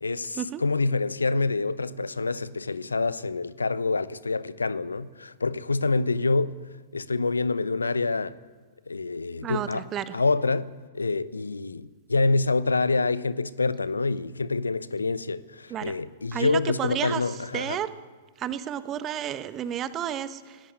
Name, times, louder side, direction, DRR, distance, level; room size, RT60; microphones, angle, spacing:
voice 1, 0.0-6.5 6.9-8.4 8.9-9.9 10.1-17.8, left 3 dB, 80° left, 0.8 m, -26 dB
voice 2, 9.4-10.2 15.7-15.9 16.3-17.2 17.5-17.9 18.4-20.6, right 10 dB, 25° right, 1.2 m, -31 dB
17.5 x 17.0 x 9.8 m
figure-of-eight pair, 105°, 0 cm